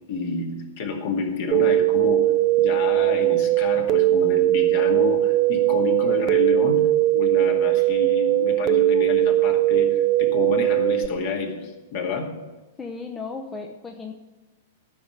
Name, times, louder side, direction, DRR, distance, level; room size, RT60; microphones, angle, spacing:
voice 1, 0.0-2.3 2.6-6.8 7.1-12.3, left 5 dB, 50° left, 3 dB, 2.1 m, -29 dB
sound 1, 1.5-11.1, right 14 dB, 35° right, 0.6 m, -20 dB
voice 2, 12.8-14.1, left 4 dB, 15° left, 3 dB, 0.9 m, -35 dB
13.5 x 5.8 x 7.8 m, 1.2 s
figure-of-eight pair, 100°, 0 cm